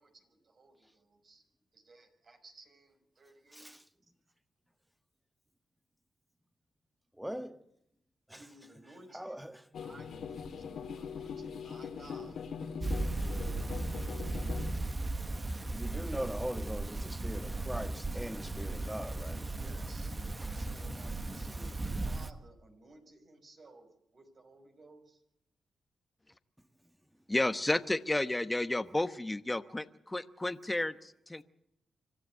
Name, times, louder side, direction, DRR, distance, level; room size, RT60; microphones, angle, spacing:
voice 1, 0.0-1.4 1.7-3.7 8.3-9.4 9.8-12.4 12.7-14.0 19.6-20.1 20.5-25.2, right 2 dB, 50° right, 5.6 m, -57 dB
voice 2, 7.2-7.6 8.3-8.4 9.1-9.6 15.7-19.5 20.4-20.7, equal, 5° right, 1.5 m, -40 dB
sound 1, 9.7-14.7, left 6 dB, 75° left, 2.3 m, -41 dB
sound 2, 12.8-22.3, right 2 dB, 25° right, 1.4 m, -36 dB
voice 3, 27.3-31.4, left 1 dB, 15° left, 1.1 m, -32 dB
25.5 x 13.0 x 8.0 m
cardioid pair, 75°, 0 cm